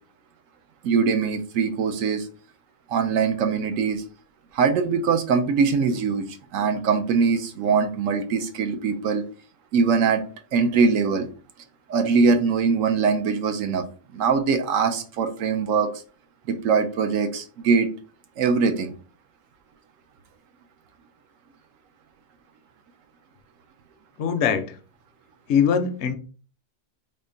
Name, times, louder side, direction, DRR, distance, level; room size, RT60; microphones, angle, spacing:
voice 1, 0.8-2.3 2.9-4.0 4.5-9.2 9.7-10.2 10.5-11.3 11.9-13.8 14.1-16.0 16.5-17.9 18.4-18.9, right 5 dB, 75° right, 6 dB, 1.0 m, -22 dB
voice 2, 24.2-24.7 25.5-26.2, left 7 dB, 65° left, 9 dB, 0.8 m, -21 dB
3.6 x 2.2 x 3.8 m, 0.37 s
omnidirectional pair, 1.4 m